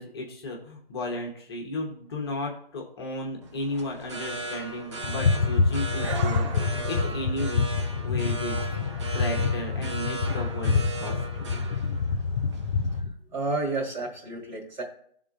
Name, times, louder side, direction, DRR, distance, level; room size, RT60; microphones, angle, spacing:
voice 1, 0.0-6.4 6.8-7.6 8.0-8.7 9.1-11.5, left 1 dB, 25° left, -1 dB, 0.9 m, -34 dB
sound 1, 3.4-13.0, right 3 dB, 30° right, 0.6 m, -37 dB
sound 2, 5.0-13.1, left 4 dB, 60° left, 0.6 m, -27 dB
voice 2, 13.3-14.8, right 3 dB, 50° right, -2 dB, 2.1 m, -30 dB
11.0 x 3.7 x 2.5 m, 0.64 s
figure-of-eight pair, 150°, 29 cm